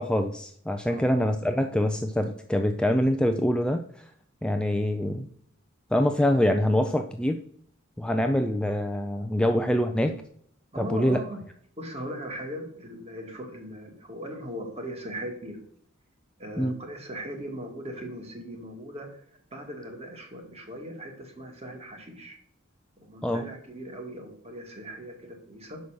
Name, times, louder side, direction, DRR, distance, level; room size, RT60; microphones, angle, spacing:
voice 1, 0.0-4.1 4.4-5.3 5.9-7.4 8.0-10.2 10.8-11.2 16.6-16.7 23.2-23.5, left 1 dB, 5° left, 5 dB, 0.4 m, -25 dB
voice 2, 10.7-11.4 11.8-15.6 16.4-19.2 19.5-22.4 23.0-25.8, equal, 30° right, 3 dB, 1.9 m, -39 dB
6.1 x 5.5 x 6.4 m, 0.64 s
head